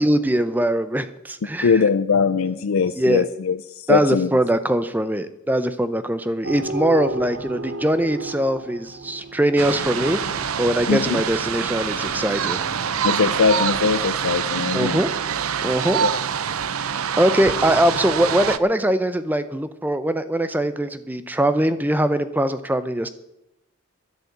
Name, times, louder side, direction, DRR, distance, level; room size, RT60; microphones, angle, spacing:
voice 1, 0.0-1.8 3.0-3.2 3.9-10.2 10.6-12.6 14.7-15.1 15.6-16.0 16.8-23.1, right 1 dB, 10° right, 12 dB, 0.6 m, -22 dB
voice 2, 1.6-4.3 10.9-11.2 13.0-15.0 16.0-16.2, left 5 dB, 85° left, 11 dB, 0.5 m, -21 dB
sound 1, 6.4-10.5, right 2 dB, 60° right, 0.9 m, -33 dB
sound 2, 9.6-18.6, right 7 dB, 90° right, 0.6 m, -25 dB
sound 3, 9.7-15.4, left 3 dB, 50° left, 1.1 m, -42 dB
11.0 x 10.5 x 8.1 m, 0.90 s
head